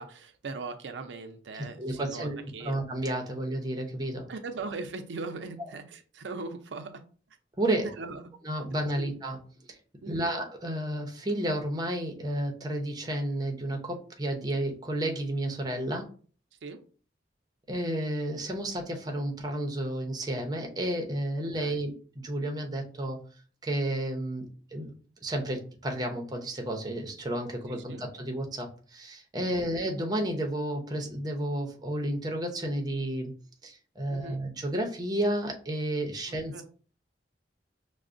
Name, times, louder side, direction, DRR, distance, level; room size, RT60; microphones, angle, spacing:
voice 1, 0.0-2.8 4.3-7.0 7.8-8.2 9.0-9.1 10.0-10.3 16.6-16.8 21.6-21.8 27.7-28.0 29.5-29.8 34.1-34.4 36.5-36.6, right 3 dB, 85° right, 7 dB, 0.5 m, -40 dB
voice 2, 1.8-4.3 7.6-7.9 8.4-9.4 9.7-9.8 10.1-16.0 17.7-23.2 23.6-24.9 25.2-33.3 33.6-36.5, right 1 dB, 20° right, 2 dB, 0.6 m, -31 dB
5.8 x 2.0 x 2.5 m, 0.41 s
head